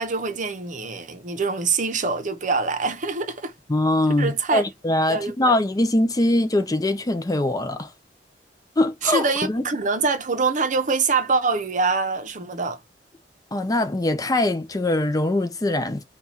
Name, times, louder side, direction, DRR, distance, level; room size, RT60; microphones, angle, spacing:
voice 1, 0.0-3.5 4.2-4.6 5.1-5.6 9.0-12.8, right 4 dB, 45° right, 0.7 m, -24 dB
voice 2, 3.7-7.9 8.8-9.6 13.5-16.0, left 1 dB, 20° left, 0.5 m, -22 dB
4.2 x 2.3 x 4.1 m
head